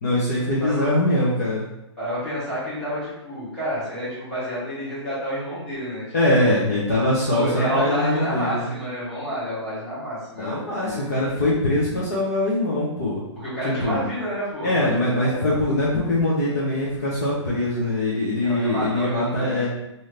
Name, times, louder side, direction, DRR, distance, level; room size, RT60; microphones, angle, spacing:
voice 1, 0.0-1.7 6.1-8.7 10.4-13.2 13.8-14.0 14.6-19.7, left 1 dB, 30° left, -7 dB, 0.6 m, -22 dB
voice 2, 2.0-6.5 7.3-10.5 10.8-11.1 13.4-15.6 18.4-19.7, equal, 5° left, -12 dB, 0.9 m, -29 dB
2.7 x 2.5 x 3.2 m, 0.89 s
hypercardioid pair, 170°, 16 cm